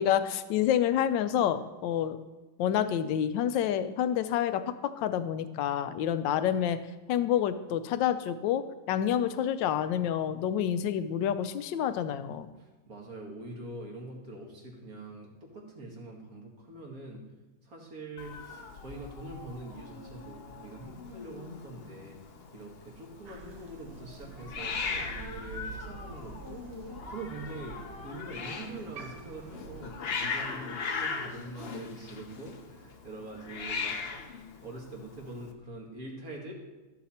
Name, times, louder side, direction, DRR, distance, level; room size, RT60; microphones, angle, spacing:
voice 1, 0.0-2.2 2.6-6.8 7.1-12.5, left 10 dB, 75° left, 12 dB, 1.3 m, -28 dB
voice 2, 12.6-17.2 17.6-22.2 22.5-34.0 34.2-34.3 34.6-36.5, right 2 dB, 45° right, -1 dB, 2.2 m, -44 dB
Hiss, 18.2-35.5, left 5 dB, 60° left, 0.6 m, -39 dB
Crow, 23.3-29.8, right 4 dB, 80° right, 1.8 m, -47 dB
14.0 x 6.7 x 4.3 m, 1.1 s
omnidirectional pair, 2.1 m